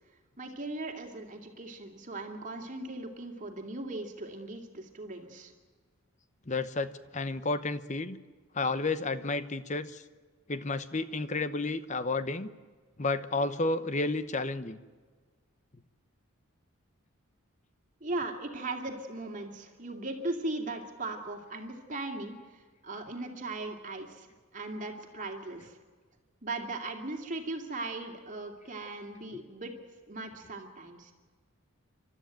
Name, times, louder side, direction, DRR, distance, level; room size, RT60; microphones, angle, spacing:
voice 1, 0.4-5.5 18.0-24.3 24.5-25.8 26.4-29.7 30.1-31.1, right 2 dB, 35° right, 4 dB, 2.5 m, -38 dB
voice 2, 6.5-8.2 8.5-10.0 10.5-12.5 13.0-14.8, left 3 dB, 35° left, 12 dB, 0.9 m, -31 dB
30.0 x 13.0 x 9.2 m, 1.5 s
head